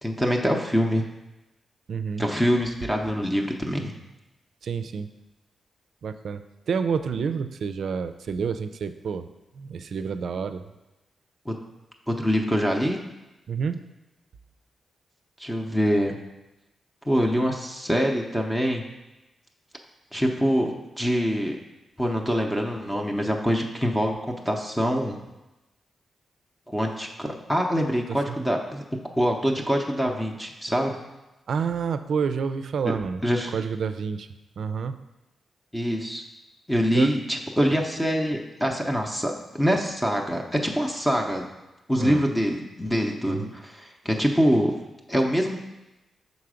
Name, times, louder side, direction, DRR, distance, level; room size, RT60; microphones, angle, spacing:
voice 1, 0.0-1.0 2.2-3.9 11.5-11.6 12.1-13.0 15.4-16.2 17.1-18.8 20.1-21.6 22.0-25.2 26.7-28.8 29.1-31.0 33.2-33.5 35.7-36.2 36.7-41.5 41.9-44.8 45.1-45.6, equal, 10° left, 1 dB, 0.7 m, -24 dB
voice 2, 1.9-2.2 4.6-5.1 6.0-9.3 9.6-10.7 13.5-13.9 28.3-28.5 31.5-33.2 33.5-34.3 34.6-35.0 36.9-37.1 42.0-42.2 43.3-43.5, right 6 dB, 70° right, 10 dB, 0.3 m, -29 dB
5.7 x 4.0 x 4.9 m, 1.0 s
cardioid pair, 70°, 0 cm